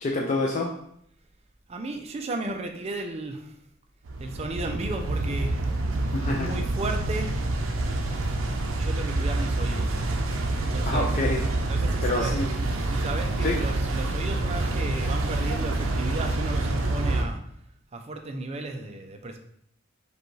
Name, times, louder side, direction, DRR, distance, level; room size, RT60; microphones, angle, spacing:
voice 1, 0.0-0.7 6.1-6.5 10.9-11.4 12.0-12.5 13.4-13.6, left 2 dB, 35° left, 0 dB, 0.3 m, -27 dB
voice 2, 1.7-3.6 4.2-5.6 6.3-7.3 8.7-9.9 10.6-11.1 11.7-12.4 12.9-17.4 17.9-19.4, right 2 dB, 30° right, 5 dB, 0.4 m, -34 dB
sound 1, 4.1-17.2, right 2 dB, 85° right, 0.5 m, -27 dB
5.0 x 2.3 x 3.1 m, 0.70 s
head